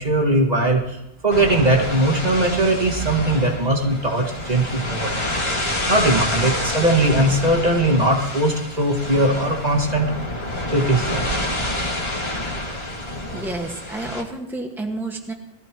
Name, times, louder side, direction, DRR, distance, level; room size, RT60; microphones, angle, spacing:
voice 1, 0.0-5.3 5.9-10.1 10.7-11.2, right 1 dB, 35° right, 0 dB, 2.0 m, -20 dB
sound 1, 1.3-14.2, left 1 dB, 25° left, 2.0 m, -28 dB
voice 2, 13.3-15.3, right 2 dB, ahead, 0 dB, 1.6 m, -30 dB
21.0 x 14.5 x 3.0 m, 0.87 s
omnidirectional pair, 1.2 m